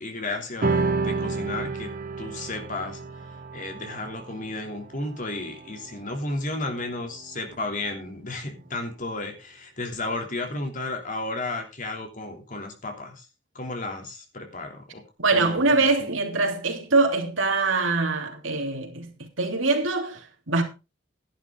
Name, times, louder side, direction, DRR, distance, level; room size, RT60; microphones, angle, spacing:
voice 1, 0.0-1.9 2.2-3.0 3.5-13.2 13.5-15.0 15.3-15.9, left 2 dB, 40° left, 3.1 m, -33 dB
sound 1, 0.6-7.3, right 3 dB, 45° right, 1.1 m, -31 dB
voice 2, 15.2-19.1 19.4-20.6, right 3 dB, 85° right, 3.1 m, -23 dB
12.5 x 11.0 x 3.8 m
head